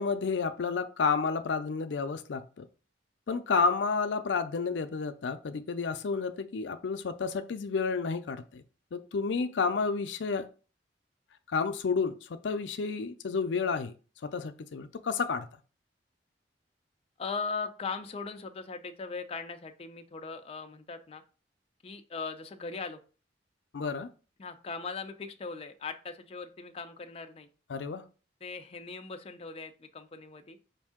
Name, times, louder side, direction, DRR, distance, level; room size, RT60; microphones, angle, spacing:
voice 1, 0.0-2.7 3.3-8.6 8.9-10.5 11.5-13.9 14.2-15.5 23.7-24.1 27.7-28.0, left 5 dB, 90° left, 0.5 m, -30 dB
voice 2, 17.2-21.2 21.8-23.0 24.4-27.5 28.4-30.6, left 4 dB, 35° left, 0.5 m, -39 dB
5.2 x 2.7 x 3.6 m
head